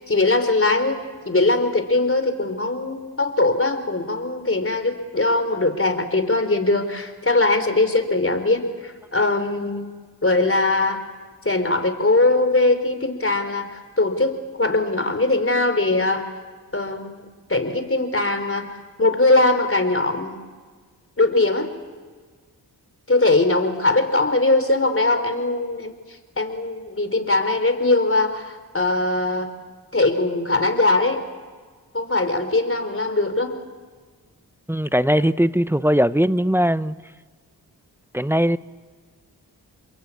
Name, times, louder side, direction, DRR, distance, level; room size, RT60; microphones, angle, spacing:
voice 1, 0.0-9.9 10.2-11.0 11.4-16.3 16.7-17.2 17.5-18.7 19.0-20.4 21.2-21.7 23.1-26.0 26.4-29.5 29.9-31.2 31.9-33.6, left 2 dB, 30° left, 8 dB, 4.2 m, -21 dB
voice 2, 34.7-36.9 38.1-38.6, equal, 5° right, 14 dB, 0.8 m, -19 dB
29.0 x 22.5 x 8.6 m, 1.5 s
cardioid pair, 40°, 40 cm